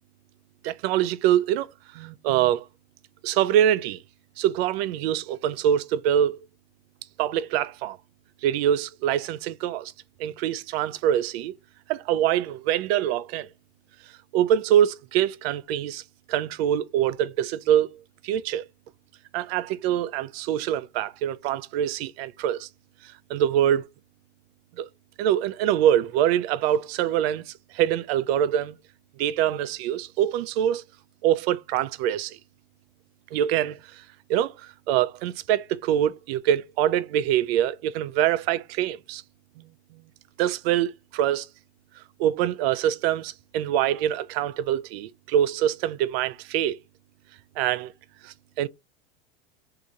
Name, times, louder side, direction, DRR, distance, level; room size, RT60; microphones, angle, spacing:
voice 1, 0.6-1.7 1.9-2.7 3.2-4.0 4.4-6.4 7.2-8.0 8.4-9.9 10.2-11.5 11.9-13.5 14.3-16.0 16.3-17.9 18.2-18.7 19.3-22.7 23.0-23.9 24.8-24.9 25.2-28.8 29.2-30.8 31.2-32.4 33.3-34.0 34.3-39.2 40.4-41.5 42.2-46.8 47.6-47.9 48.2-48.7, right 10 dB, 70° right, 0.6 m, -24 dB
3.6 x 2.8 x 3.9 m
supercardioid pair, 115°, 32 cm